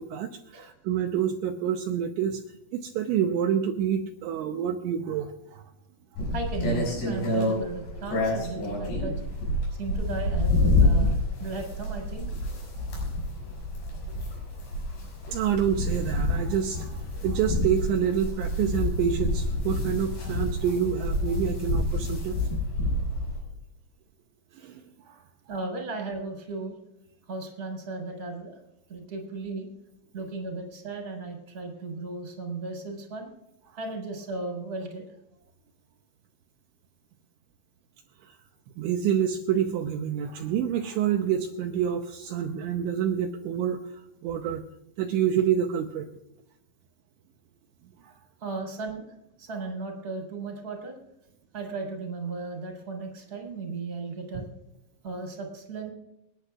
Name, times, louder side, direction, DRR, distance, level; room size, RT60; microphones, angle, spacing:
voice 1, 0.0-2.4 2.7-5.6 6.2-6.3 15.3-22.4 24.5-24.8 25.1-25.2 38.2-38.3 38.8-44.6 45.0-46.1 48.0-48.1 54.3-54.4, right 8 dB, 80° right, 3 dB, 2.9 m, -28 dB
sound 1, 6.2-23.4, left 2 dB, 70° left, 8.6 m, -28 dB
voice 2, 6.3-9.1 9.8-12.3 25.5-26.8 27.3-28.6 28.9-29.7 30.1-33.3 33.8-35.0 48.4-49.1 49.4-51.0 51.5-54.5 55.0-55.9, right 3 dB, 20° right, 1 dB, 3.6 m, -35 dB
29.5 x 10.0 x 2.4 m, 0.84 s
omnidirectional pair, 5.8 m